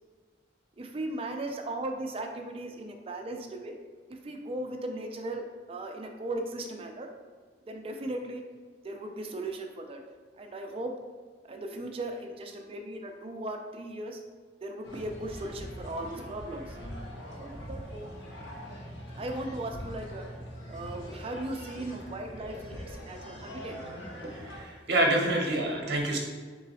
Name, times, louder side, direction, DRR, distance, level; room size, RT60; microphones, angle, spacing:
voice 1, 0.8-3.8 4.1-7.1 7.7-8.4 8.8-10.0 10.4-10.9 11.4-14.2 14.6-16.8 17.4-18.1 19.2-20.3 20.7-23.8, right 1 dB, 30° right, 4 dB, 0.4 m, -37 dB
sound 1, 14.8-24.6, equal, 80° left, 1.0 m, -42 dB
voice 2, 24.2-26.2, right 1 dB, 60° right, 0 dB, 0.8 m, -27 dB
3.9 x 3.0 x 4.1 m, 1.5 s
head